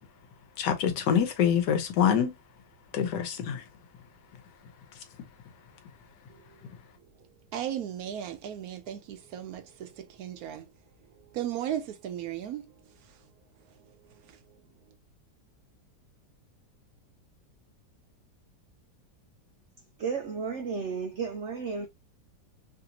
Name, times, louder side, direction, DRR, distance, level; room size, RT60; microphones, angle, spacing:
voice 1, 0.6-2.4 2.9-3.6, left 8 dB, 80° left, 1.4 m, -25 dB
voice 2, 7.5-10.6 11.3-12.7, right 10 dB, 70° right, 0.9 m, -35 dB
voice 3, 20.0-21.9, right 5 dB, 85° right, 0.6 m, -33 dB
3.2 x 2.6 x 2.8 m
omnidirectional pair, 1.8 m